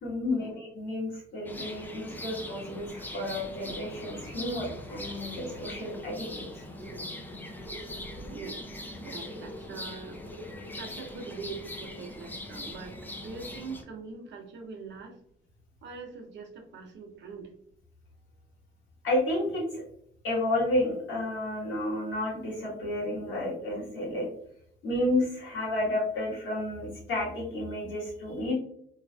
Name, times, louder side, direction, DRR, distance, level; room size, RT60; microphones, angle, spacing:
voice 1, 0.0-6.6 19.0-19.8 20.2-24.3 24.8-28.5, left 1 dB, 80° left, -4 dB, 1.5 m, -31 dB
sound 1, 1.5-13.8, left 1 dB, 10° left, 0.5 m, -41 dB
voice 2, 8.1-8.6 9.0-15.2 15.8-17.5, right 4 dB, 65° right, 2 dB, 0.7 m, -43 dB
3.1 x 2.4 x 2.3 m, 0.69 s
cardioid pair, 90°, 20 cm